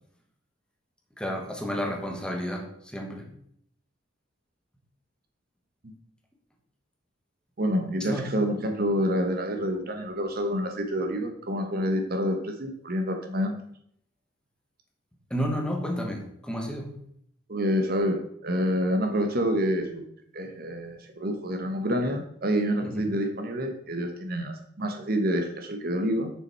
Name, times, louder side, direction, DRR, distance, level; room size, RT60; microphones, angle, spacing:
voice 1, 1.2-3.3 8.0-8.4 15.3-17.0 22.8-23.1, equal, 5° left, 2 dB, 1.3 m, -32 dB
voice 2, 7.6-13.6 17.5-20.0 20.3-26.3, equal, 55° right, 5 dB, 1.1 m, -28 dB
6.7 x 6.2 x 4.5 m, 0.68 s
head